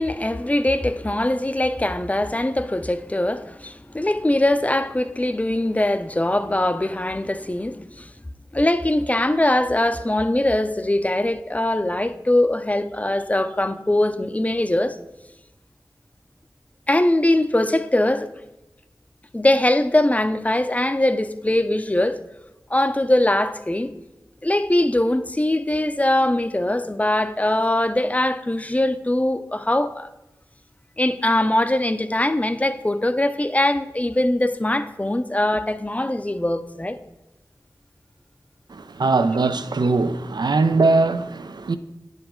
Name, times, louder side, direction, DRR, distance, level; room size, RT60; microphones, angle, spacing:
voice 1, 0.0-8.1 8.5-15.0 16.9-18.3 19.3-22.2 22.7-23.9 24.4-30.1 31.0-37.0, left 1 dB, 20° left, 0.4 m, -21 dB
voice 2, 38.7-41.8, right 3 dB, 75° right, 0.4 m, -21 dB
10.5 x 4.9 x 3.7 m
wide cardioid pair, 55°, 7 cm